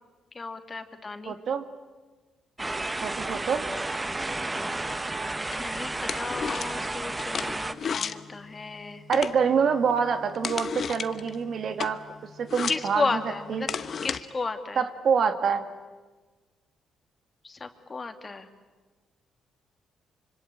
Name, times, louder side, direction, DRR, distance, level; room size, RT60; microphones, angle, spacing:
voice 1, 0.3-1.4 5.6-9.0 12.7-13.7 14.0-14.9 17.4-18.5, left 4 dB, 30° left, 7 dB, 2.4 m, -33 dB
voice 2, 1.3-1.7 3.0-3.7 9.1-12.0 12.4-13.2 13.5-13.7 14.8-15.7, right 6 dB, 60° right, 9 dB, 1.9 m, -26 dB
sound 1, 2.6-7.7, right 2 dB, 15° right, 1.2 m, -32 dB
sound 2, 4.1-14.2, left 6 dB, 50° left, 1.1 m, -36 dB
25.5 x 25.0 x 8.9 m, 1.3 s
cardioid pair, 90°, 0 cm